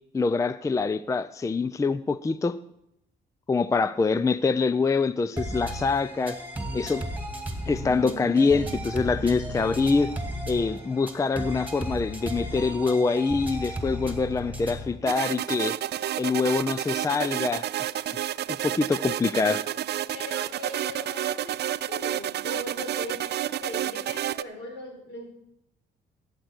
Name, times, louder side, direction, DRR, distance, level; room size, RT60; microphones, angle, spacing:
voice 1, 0.1-2.6 3.5-6.4 6.7-7.0 7.7-10.1 10.5-15.8 16.2-17.7 18.5-19.6, left 4 dB, 15° left, 15 dB, 0.4 m, -25 dB
sound 1, 5.4-15.0, equal, 10° right, 2.1 m, -35 dB
sound 2, 7.8-13.2, right 7 dB, 55° left, 4.7 m, -47 dB
sound 3, 15.1-24.4, right 12 dB, 55° right, 0.4 m, -30 dB
voice 2, 20.1-25.3, left 1 dB, 75° left, 1 dB, 5.0 m, -40 dB
15.0 x 8.1 x 4.5 m, 0.79 s
cardioid pair, 90°, 20 cm